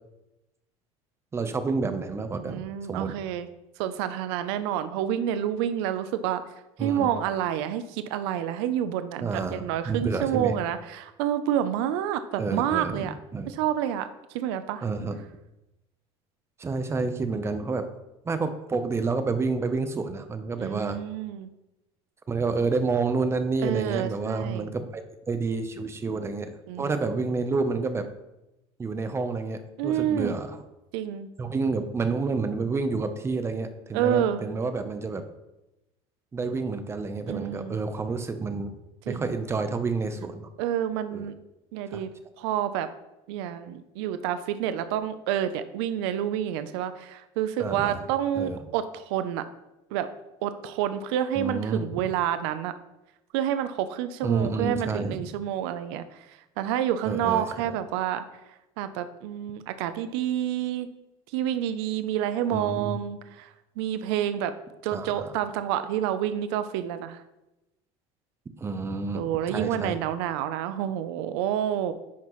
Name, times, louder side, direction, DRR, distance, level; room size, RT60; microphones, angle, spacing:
voice 1, 1.3-3.1 6.8-7.1 9.2-10.6 12.4-13.1 13.3-13.5 14.8-15.2 16.6-17.9 18.2-21.0 22.3-25.0 25.3-28.1 28.8-30.6 31.4-35.2 36.3-38.7 39.1-40.5 41.1-41.3 41.9-42.0 47.6-48.0 48.3-48.6 51.4-51.9 54.2-55.2 57.0-57.8 62.5-63.0 64.9-65.3 68.6-70.0, right 4 dB, 20° right, 9 dB, 0.7 m, -29 dB
voice 2, 2.4-3.5 3.8-6.4 6.8-13.1 13.5-14.8 20.6-21.5 23.6-24.7 26.7-27.0 29.8-30.3 30.9-31.3 33.9-34.4 37.3-37.8 39.1-39.3 40.6-41.3 41.7-42.1 42.4-42.9 43.3-49.4 49.9-50.1 50.4-52.7 53.3-58.2 58.8-60.9 61.3-64.5 64.8-67.2 69.1-71.9, right 10 dB, 90° right, 11 dB, 0.5 m, -28 dB
10.0 x 5.8 x 3.1 m, 0.95 s
cardioid pair, 130°, 13 cm